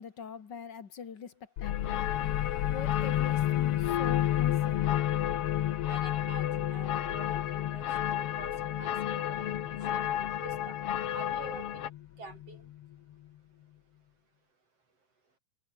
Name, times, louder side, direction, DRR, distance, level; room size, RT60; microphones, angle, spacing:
voice 1, 0.0-2.1 2.7-4.9, left 6 dB, 40° left, 2.0 m, -43 dB
sound 1, 1.6-12.9, left 13 dB, 75° left, 1.4 m, -32 dB
sound 2, 1.6-11.9, left 10 dB, 55° left, 1.8 m, -34 dB
voice 2, 5.9-9.5 9.9-10.8 11.1-11.9 12.2-12.7, right 3 dB, 45° right, 6.5 m, -48 dB
omnidirectional pair, 4.0 m